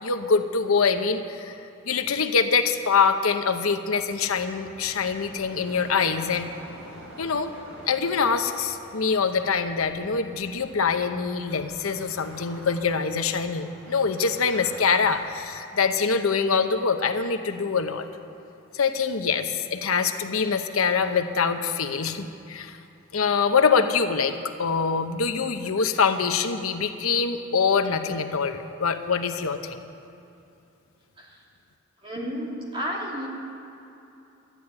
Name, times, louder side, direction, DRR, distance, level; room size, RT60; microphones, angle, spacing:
voice 1, 0.0-1.6 1.9-6.5 7.2-7.5 7.9-18.1 18.7-22.8 23.1-29.8, left 5 dB, 90° left, 7 dB, 0.9 m, -24 dB
sound 1, 4.0-15.4, right 1 dB, 70° right, 3.1 m, -47 dB
voice 2, 32.0-33.3, equal, 25° right, -3 dB, 2.8 m, -32 dB
13.0 x 10.0 x 9.7 m, 2.8 s
head